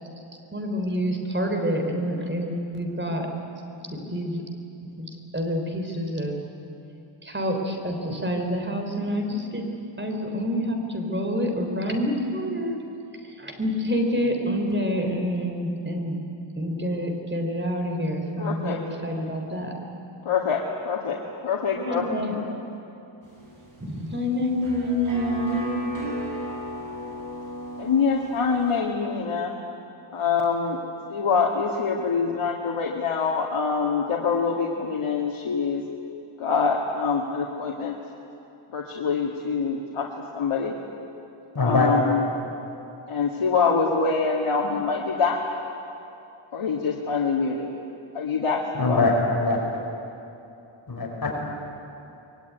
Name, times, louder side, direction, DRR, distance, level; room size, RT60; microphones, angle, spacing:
voice 1, 0.5-3.3 3.8-4.4 5.0-6.4 7.2-9.7 10.0-12.8 13.2-16.2 16.6-19.7 21.8-22.4 23.8-25.6, equal, 20° right, 3 dB, 3.7 m, -27 dB
voice 2, 18.4-18.8 20.2-20.6 20.9-21.2 21.4-22.0 22.3-22.4 27.8-29.5 30.1-30.8 31.1-35.8 36.4-38.0 38.7-40.1 40.3-40.8 41.6-42.3 43.1-45.4 46.5-47.7 48.1-49.1, left 5 dB, 85° left, -2 dB, 2.3 m, -25 dB
sound 1, 23.2-28.8, right 1 dB, 40° right, 7.0 m, -34 dB
voice 3, 41.5-41.9 48.7-49.6 50.9-51.3, left 3 dB, 45° left, -1 dB, 5.7 m, -22 dB
24.5 x 22.0 x 9.5 m, 2.9 s
wide cardioid pair, 120°, 49 cm